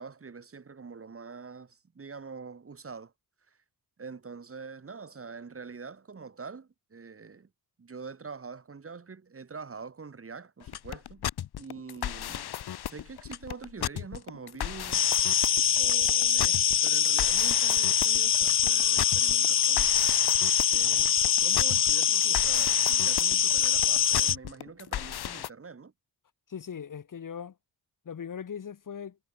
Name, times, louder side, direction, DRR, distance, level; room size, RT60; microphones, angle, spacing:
voice 1, 0.0-3.1 3.5-3.6 4.0-7.5 7.8-11.3 11.6-12.5 12.8-15.1 15.8-20.1 20.7-25.9, right 5 dB, 35° right, 7.6 m, -45 dB
sound 1, 10.6-25.5, left 11 dB, 90° left, 2.4 m, -35 dB
sound 2, 14.9-24.4, left 9 dB, 35° left, 0.4 m, -24 dB
voice 2, 26.5-27.5 28.1-29.2, left 7 dB, 55° left, 4.2 m, -39 dB
wide cardioid pair, 125°, 38 cm